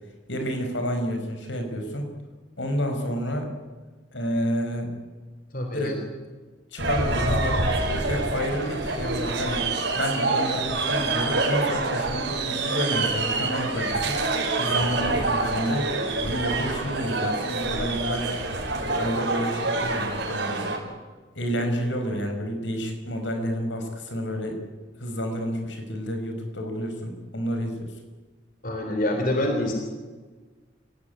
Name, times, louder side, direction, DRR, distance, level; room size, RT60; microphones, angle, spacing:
voice 1, 0.3-2.1 2.6-3.5 4.1-4.9 5.7-6.0 6.7-14.2 14.6-15.9 16.2-18.4 18.7-20.7 21.3-24.6 25.0-27.9, equal, 75° left, 5 dB, 5.6 m, -29 dB
voice 2, 5.5-6.0 28.6-29.7, left 1 dB, 45° left, 3 dB, 3.8 m, -26 dB
sound 1, 6.8-20.8, right 3 dB, 70° right, 5.8 m, -26 dB
28.5 x 17.5 x 9.8 m, 1.4 s
head